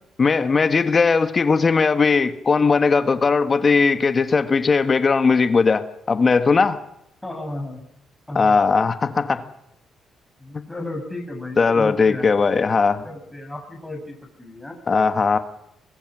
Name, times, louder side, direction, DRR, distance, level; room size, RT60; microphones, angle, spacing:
voice 1, 0.2-6.8 8.3-9.4 10.5-10.6 11.6-13.0 14.9-15.4, left 4 dB, 35° left, 9 dB, 1.3 m, -18 dB
voice 2, 7.2-7.9 8.3-8.6 10.4-12.3 13.0-14.8, left 1 dB, 10° left, 2 dB, 6.4 m, -34 dB
23.0 x 21.0 x 6.1 m, 0.81 s
cardioid pair, 90°, 0 cm